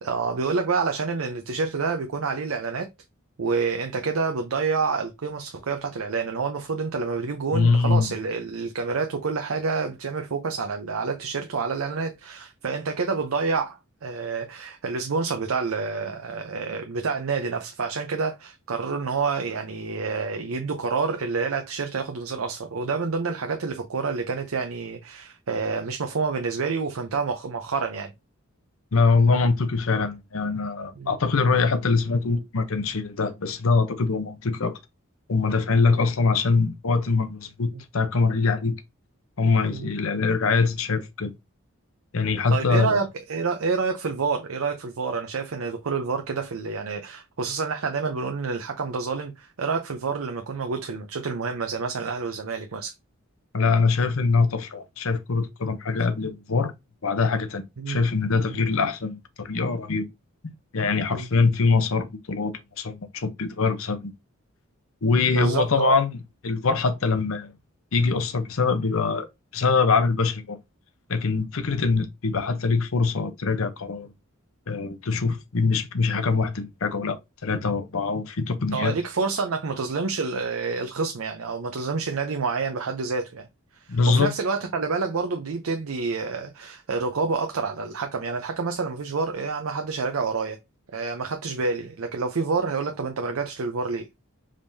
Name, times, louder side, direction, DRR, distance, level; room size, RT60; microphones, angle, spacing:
voice 1, 0.0-2.9 3.4-28.1 31.0-31.1 37.7-37.8 39.7-39.9 42.5-52.9 57.8-58.0 58.5-58.7 61.1-61.3 65.3-66.0 77.5-77.6 78.7-83.4 83.7-90.6 90.9-94.0, right 4 dB, 75° right, 0.6 m, -28 dB
voice 2, 7.5-8.1 28.9-34.8 35.3-38.8 39.4-41.3 42.1-43.0 53.5-56.7 57.0-60.1 60.7-64.1 65.0-66.2 66.4-67.5 67.9-69.3 69.5-70.6 71.1-74.1 74.7-78.9 83.9-84.3, left 4 dB, 70° left, 0.7 m, -23 dB
5.0 x 3.5 x 2.6 m
head